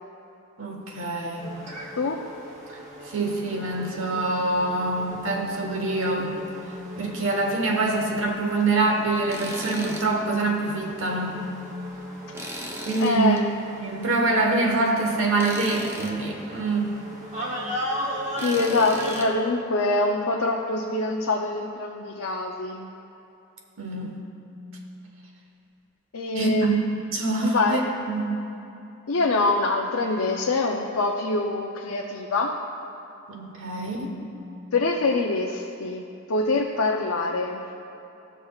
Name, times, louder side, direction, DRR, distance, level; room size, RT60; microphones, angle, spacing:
voice 1, 0.6-1.6 2.7-2.8 3.1-6.5 7.0-11.5 12.8-13.4 13.8-16.9 23.8-24.2 26.3-26.8 27.1-27.8 28.1-28.4 33.3-34.2, right 3 dB, 65° right, 0 dB, 1.2 m, -25 dB
sound 1, 1.4-19.3, equal, 35° right, 1.0 m, -38 dB
voice 2, 2.0-2.3 13.0-13.5 18.4-22.9 26.1-26.9 27.4-27.8 29.1-32.5 34.7-37.7, left 3 dB, 75° left, -1 dB, 0.6 m, -25 dB
Tools, 9.3-10.1 10.5-10.6 12.3-13.4 15.4-16.1 18.4-19.3, equal, 10° right, 0.6 m, -36 dB
16.5 x 6.3 x 2.4 m, 2.9 s
head